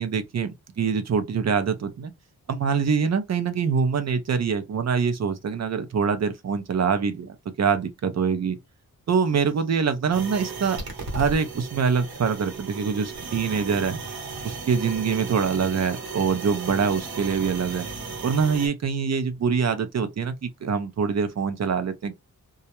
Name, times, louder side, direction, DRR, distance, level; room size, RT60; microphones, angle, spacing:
voice 1, 0.0-2.1 2.5-8.6 9.1-10.8 11.1-14.0 14.4-17.9 18.2-22.1, right 6 dB, 45° right, 0.5 m, -24 dB
sound 1, 10.1-18.7, right 4 dB, 85° right, 0.9 m, -35 dB
2.3 x 2.0 x 2.8 m
wide cardioid pair, 125°, 36 cm